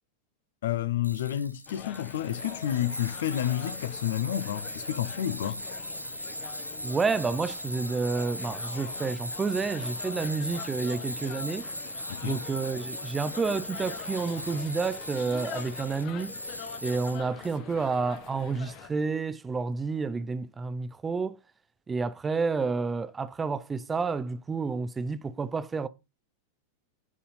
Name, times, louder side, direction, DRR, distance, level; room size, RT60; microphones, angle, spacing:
voice 1, 0.6-5.6 12.1-12.4, left 12 dB, 60° left, 0.7 m, -30 dB
Tools, 1.0-17.5, equal, 90° left, 0.8 m, -39 dB
sound 1, 1.7-18.9, left 9 dB, 45° left, 1.2 m, -44 dB
voice 2, 6.8-11.7 12.2-16.4 16.8-21.4 21.9-25.9, right 4 dB, 15° right, 0.7 m, -30 dB
11.0 x 4.2 x 5.6 m
figure-of-eight pair, 90°, 0 cm